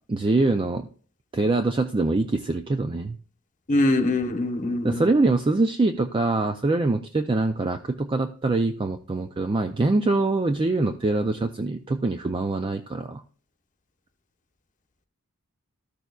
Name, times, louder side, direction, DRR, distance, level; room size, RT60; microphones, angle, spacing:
voice 1, 0.1-0.9 1.3-3.2 4.8-13.2, right 2 dB, 25° right, 7 dB, 0.4 m, -24 dB
voice 2, 3.7-5.1, left 2 dB, 35° left, 6 dB, 1.0 m, -23 dB
13.5 x 6.7 x 2.3 m, 0.43 s
head